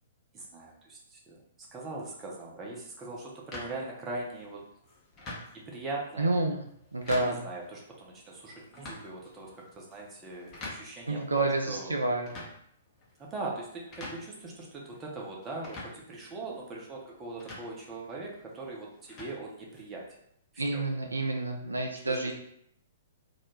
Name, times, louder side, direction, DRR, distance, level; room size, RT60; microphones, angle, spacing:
voice 1, 0.3-4.6 5.5-6.3 7.2-12.0 13.2-20.1 20.7-20.8 22.0-22.2, right 2 dB, 20° right, -2 dB, 0.6 m, -41 dB
Sonicsnaps-OM-FR-couvercle-de-poubelle, 3.5-20.2, left 2 dB, 25° left, 0.6 m, -48 dB
voice 2, 6.2-6.6 6.9-7.4 11.1-12.3 20.6-22.3, right 2 dB, 80° right, 3 dB, 0.3 m, -29 dB
2.3 x 2.0 x 3.0 m, 0.71 s
figure-of-eight pair, 115°, 0 cm